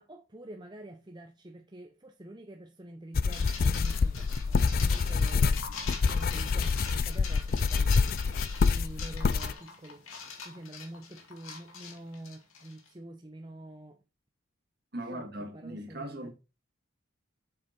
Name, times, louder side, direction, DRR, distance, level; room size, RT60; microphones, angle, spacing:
voice 1, 0.0-8.2 8.7-14.0 15.1-16.3, right 1 dB, 20° right, 0.7 m, -47 dB
sound 1, 3.1-9.5, left 4 dB, 45° left, 0.4 m, -26 dB
sound 2, 3.3-12.9, left 5 dB, 85° left, 2.4 m, -43 dB
voice 2, 14.9-16.3, right 1 dB, 50° right, 2.2 m, -39 dB
7.8 x 7.3 x 4.4 m
head